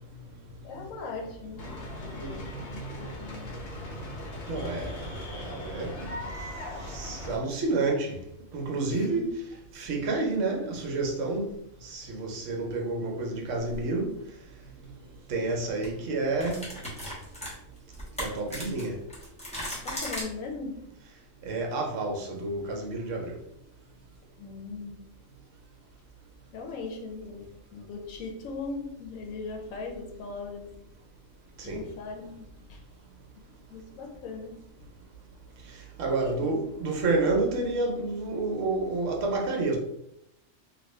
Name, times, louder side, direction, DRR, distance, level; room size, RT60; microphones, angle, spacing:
voice 1, 0.6-3.6 8.8-9.2 19.8-20.8 24.4-25.0 26.5-30.7 31.6-32.8 33.7-34.6 36.1-36.6 37.2-37.4, left 4 dB, 90° left, 2 dB, 1.1 m, -39 dB
sound 1, 1.6-7.4, left 1 dB, 55° left, 0.9 m, -39 dB
voice 2, 1.9-3.2 4.5-5.9 6.9-8.1 8.5-9.3 9.7-11.5 11.8-14.1 15.3-16.6 18.2-18.9 21.4-23.4 31.6-31.8 36.0-39.8, right 3 dB, 70° right, 1 dB, 1.1 m, -29 dB
sound 2, 13.6-13.8 15.3-15.5 15.8-15.9 16.4-20.2, equal, 5° left, 1.0 m, -37 dB
2.9 x 2.5 x 3.1 m, 0.78 s
omnidirectional pair, 1.3 m